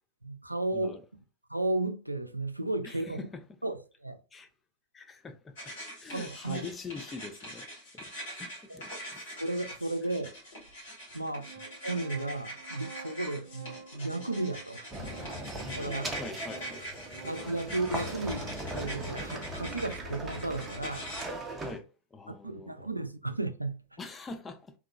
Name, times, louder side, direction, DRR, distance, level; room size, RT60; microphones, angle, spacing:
voice 1, 0.2-1.0 1.5-3.2 3.6-4.2 6.1-6.7 8.7-8.8 9.4-10.3 11.1-11.5 11.8-14.9 15.7-16.1 17.2-21.1 22.3-24.0, right 2 dB, 85° right, 0.3 m, -34 dB
voice 2, 2.8-3.4 4.3-4.5 4.9-5.7 6.0-7.7 7.9-9.4 13.3-13.4 15.9-16.8 21.6-22.8 24.0-24.7, left 4 dB, 15° left, 0.5 m, -44 dB
sound 1, 5.6-21.2, equal, 60° left, 1.8 m, -43 dB
Organ, 9.7-9.8 10.7-10.8 11.1-21.0, right 4 dB, 55° right, 0.7 m, -50 dB
sound 2, 14.9-21.8, right 1 dB, 15° right, 0.7 m, -39 dB
3.5 x 2.8 x 2.3 m
figure-of-eight pair, 90°, 0 cm